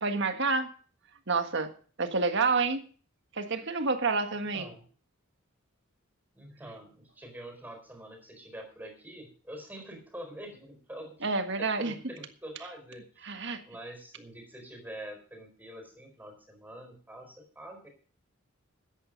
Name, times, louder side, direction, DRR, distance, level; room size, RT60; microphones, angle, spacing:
voice 1, 0.0-0.7 1.3-1.7 2.0-2.8 3.4-4.7 11.2-11.9 13.2-13.6, right 4 dB, 60° right, 7 dB, 1.6 m, -28 dB
voice 2, 4.3-4.9 6.3-13.4 13.6-17.9, right 1 dB, 10° right, 4 dB, 4.5 m, -46 dB
14.0 x 10.0 x 5.2 m, 0.42 s
head